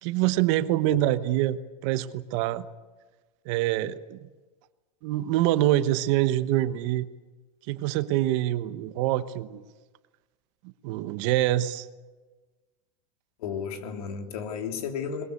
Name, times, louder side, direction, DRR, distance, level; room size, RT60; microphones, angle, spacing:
voice 1, 0.0-2.7 3.4-4.3 5.0-7.1 7.7-9.6 10.6-11.9, right 14 dB, 55° right, 12 dB, 1.1 m, -25 dB
voice 2, 13.4-15.2, left 7 dB, 80° left, 4 dB, 3.3 m, -33 dB
22.0 x 21.0 x 8.4 m, 1.3 s
supercardioid pair, 140°, 19 cm